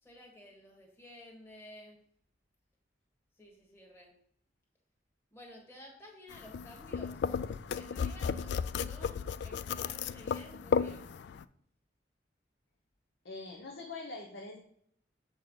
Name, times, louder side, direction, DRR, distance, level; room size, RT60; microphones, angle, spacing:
voice 1, 0.0-2.0 3.3-4.1 5.3-7.3 7.7-11.2, left 1 dB, 15° left, -1 dB, 1.4 m, -53 dB
sound 1, 6.3-11.4, left 6 dB, 60° left, 0.3 m, -34 dB
voice 2, 13.2-14.6, left 3 dB, 80° left, 0 dB, 1.1 m, -43 dB
7.5 x 4.4 x 5.4 m, 0.67 s
head